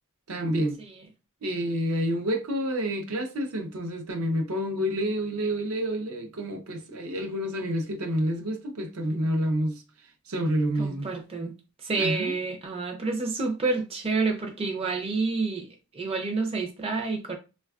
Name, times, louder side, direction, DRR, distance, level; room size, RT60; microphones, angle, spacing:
voice 1, 0.3-0.8 1.4-9.8 10.3-11.1 12.0-12.3, equal, 80° right, 0.6 m, -28 dB
voice 2, 10.8-11.5 11.8-15.7 15.9-17.3, right 3 dB, 25° right, 0.5 m, -29 dB
3.2 x 2.2 x 2.3 m
head